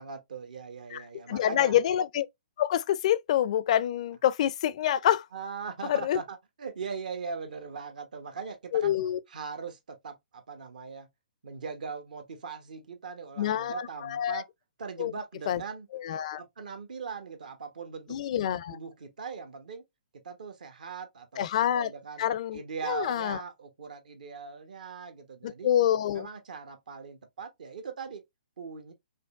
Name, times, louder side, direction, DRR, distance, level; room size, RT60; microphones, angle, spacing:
voice 1, 0.0-1.8 5.3-9.0 9.3-11.1 11.4-14.5 14.8-15.9 16.4-18.2 18.7-19.8 20.1-21.5 21.7-22.3 22.5-25.7 26.1-28.2 28.6-28.9, right 5 dB, 65° right, 1.0 m, -40 dB
voice 2, 1.3-2.3 2.6-5.3 5.9-6.2 8.7-9.2 13.4-14.4 15.0-15.1 15.5-15.6 15.9-16.4 18.1-18.8 21.4-21.9 22.2-23.4 25.4-26.3, left 11 dB, 50° left, 0.4 m, -27 dB
5.2 x 2.1 x 2.4 m
figure-of-eight pair, 130°, 5 cm